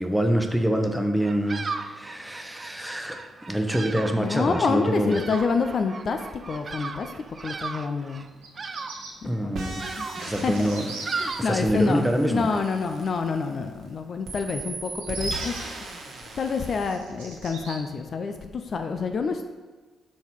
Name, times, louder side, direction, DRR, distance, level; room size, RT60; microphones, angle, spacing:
voice 1, 0.0-5.2 9.2-9.9 10.2-10.9 11.4-12.6, equal, 5° right, 4 dB, 0.9 m, -26 dB
Bird vocalization bird call bird song, 1.2-12.1, right 4 dB, 40° right, 0.3 m, -37 dB
voice 2, 4.2-6.2 6.5-7.1 7.4-8.2 9.2-9.6 10.0-10.7 11.2-15.6 16.4-19.5, left 4 dB, 50° left, 6 dB, 0.4 m, -27 dB
Bird vocalization bird call bird song 2, 8.3-9.1 9.9-11.4 14.9-15.6 16.3-17.8, right 4 dB, 85° right, 0.8 m, -40 dB
sound 1, 9.5-13.8 14.2-16.9, right 2 dB, 60° right, 1.1 m, -37 dB
6.1 x 4.0 x 4.5 m, 1.3 s
hypercardioid pair, 40°, 0 cm